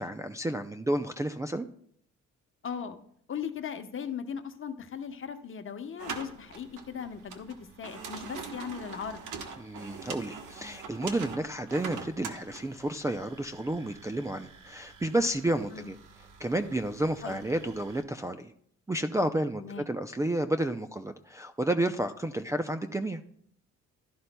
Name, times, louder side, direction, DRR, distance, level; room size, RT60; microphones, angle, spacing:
voice 1, 0.0-1.7 9.6-16.0 16.4-18.5 18.9-23.2, right 1 dB, 10° right, 4 dB, 0.4 m, -31 dB
voice 2, 2.6-3.0 3.3-9.2 15.7-15.9 17.2-17.4 19.6-19.9, left 7 dB, 45° left, 8 dB, 1.0 m, -38 dB
sound 1, 6.0-18.0, right 5 dB, 80° right, 1.1 m, -44 dB
12.0 x 11.0 x 2.2 m, 0.64 s
cardioid pair, 90°, 30 cm